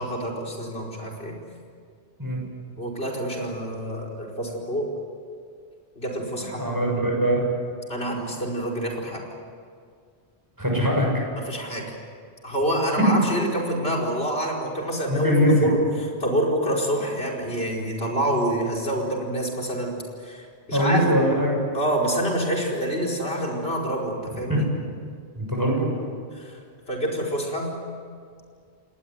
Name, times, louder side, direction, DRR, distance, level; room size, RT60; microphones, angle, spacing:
voice 1, 0.0-1.4 2.8-4.9 6.0-6.6 7.9-9.2 11.4-11.9 12.4-15.8 16.2-21.0 21.7-24.7 26.3-26.6 26.9-27.8, right 1 dB, 70° left, 1 dB, 5.1 m, -27 dB
voice 2, 6.4-7.4 10.6-11.1 13.1-13.2 15.1-15.5 20.7-21.6 24.5-24.6 25.4-25.9, equal, 20° right, -1 dB, 7.2 m, -22 dB
28.5 x 19.5 x 9.5 m, 2.1 s
omnidirectional pair, 1.1 m